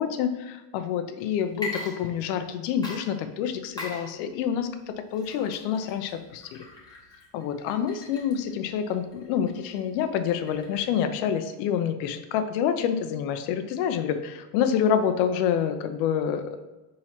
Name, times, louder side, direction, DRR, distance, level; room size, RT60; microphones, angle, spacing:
voice 1, 0.0-4.7 5.1-6.6 7.3-16.7, left 8 dB, 80° left, 9 dB, 0.6 m, -27 dB
Water / Liquid, 1.5-2.5 2.8-11.1, left 2 dB, 10° left, 0.9 m, -42 dB
4.2 x 3.8 x 3.0 m, 1.1 s
supercardioid pair, 120°, 48 cm